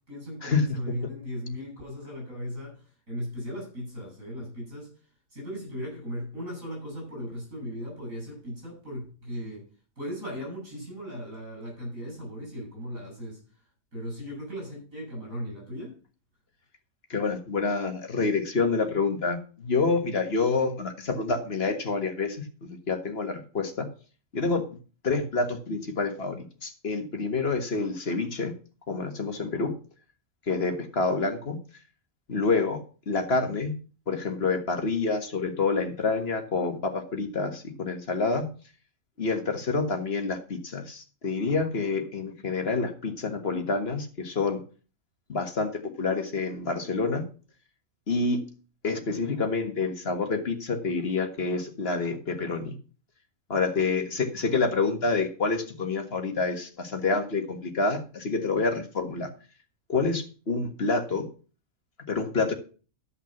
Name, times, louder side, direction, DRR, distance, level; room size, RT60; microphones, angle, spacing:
voice 1, 0.1-4.9 5.3-9.6 10.0-13.4 13.9-15.9, equal, 85° right, -2 dB, 7.6 m, -37 dB
voice 2, 17.1-23.9 24.3-24.6 25.0-28.5 28.9-29.7 30.5-31.6 32.3-32.8 33.1-33.7 34.1-38.5 39.2-44.6 45.3-47.2 48.1-48.4 48.8-52.7 53.5-59.3 59.9-61.3 62.1-62.5, left 3 dB, 50° left, 5 dB, 1.8 m, -27 dB
12.5 x 5.8 x 5.9 m, 0.37 s
omnidirectional pair, 1.4 m